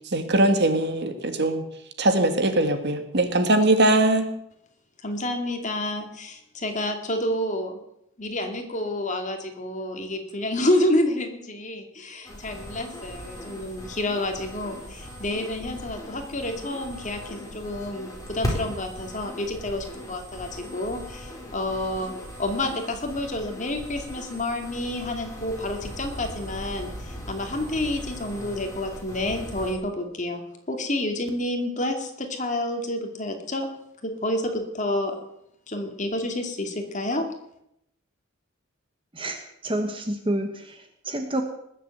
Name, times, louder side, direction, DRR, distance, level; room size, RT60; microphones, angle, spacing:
voice 1, 0.1-1.6 2.0-4.3, right 1 dB, 50° right, 8 dB, 1.8 m, -21 dB
voice 2, 5.0-7.7 8.2-22.1 22.4-30.4 30.7-33.7 34.0-35.2 35.7-37.3, left 1 dB, 35° left, 4 dB, 2.4 m, -29 dB
sound 1, 12.2-29.7, equal, 15° left, 4.2 m, -38 dB
voice 3, 39.1-41.4, right 1 dB, 25° right, 6 dB, 1.2 m, -29 dB
20.0 x 7.7 x 7.9 m, 0.78 s
head